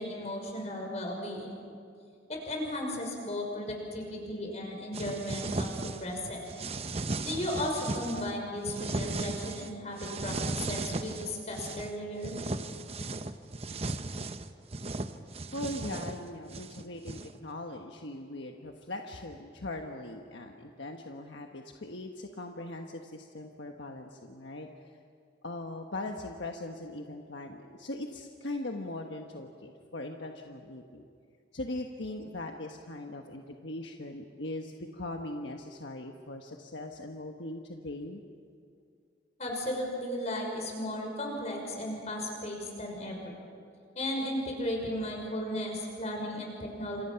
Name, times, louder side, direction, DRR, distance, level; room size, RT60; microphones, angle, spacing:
voice 1, 0.0-1.6 2.3-6.5 7.2-12.4 39.4-43.4 43.9-47.0, left 1 dB, 35° left, 1 dB, 6.0 m, -35 dB
sound 1, 4.9-6.2 6.5-8.3 8.7-9.7 10.0-11.9 12.2-17.4, right 2 dB, 30° right, 0.9 m, -36 dB
voice 2, 15.5-24.9 25.4-31.1 31.5-38.2, left 2 dB, 70° left, 3 dB, 1.3 m, -40 dB
30.0 x 27.5 x 5.9 m, 2.4 s
head